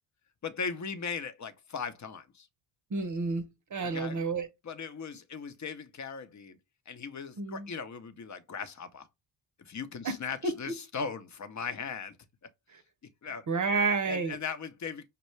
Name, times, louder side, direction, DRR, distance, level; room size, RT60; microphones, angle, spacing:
voice 1, 0.4-2.5 3.8-4.2 4.6-6.6 6.9-9.1 9.6-12.2 13.2-13.5 14.1-15.1, left 5 dB, 35° left, 0.8 m, -38 dB
voice 2, 2.9-4.5 7.4-7.7 10.0-10.2 10.4-10.5 13.5-14.4, right 4 dB, 35° right, 0.7 m, -30 dB
5.6 x 2.2 x 3.2 m
hypercardioid pair, 45°, 50 cm